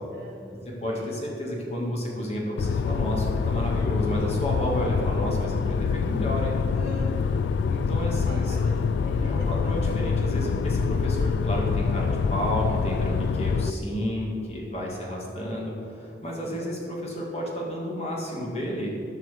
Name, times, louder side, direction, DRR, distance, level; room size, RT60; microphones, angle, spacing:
voice 1, 0.1-1.1 6.7-7.5 7.7-9.5 14.7-15.2 16.4-16.6, equal, 70° right, -7 dB, 1.9 m, -43 dB
voice 2, 0.7-6.6 7.7-8.6 9.2-19.0, equal, 35° left, -2 dB, 2.0 m, -31 dB
sound 1, 2.6-13.7, left 5 dB, 85° left, 0.3 m, -25 dB
11.5 x 4.7 x 7.5 m, 2.5 s
head